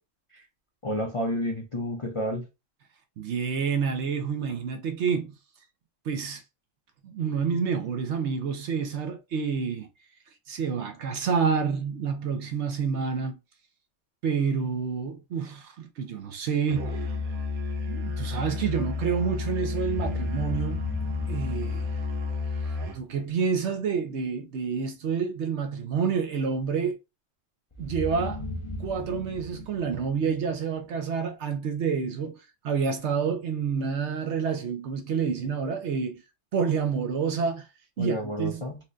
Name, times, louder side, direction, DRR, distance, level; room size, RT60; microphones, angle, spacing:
voice 1, 0.8-2.5 38.0-38.8, equal, 50° left, 0.4 m, -30 dB
voice 2, 3.2-5.4 6.0-6.4 7.0-9.9 10.5-13.3 14.2-17.1 17.9-20.8 21.3-21.9 22.9-27.0 27.8-28.4 28.8-36.2 36.5-37.7 38.0-38.6, right 6 dB, 65° right, 0.8 m, -28 dB
Musical instrument, 16.7-23.1, left 4 dB, 85° right, 1.2 m, -31 dB
sound 1, 19.8-22.7 27.7-30.9, left 1 dB, 25° left, 0.8 m, -38 dB
4.3 x 2.2 x 2.5 m
omnidirectional pair, 1.5 m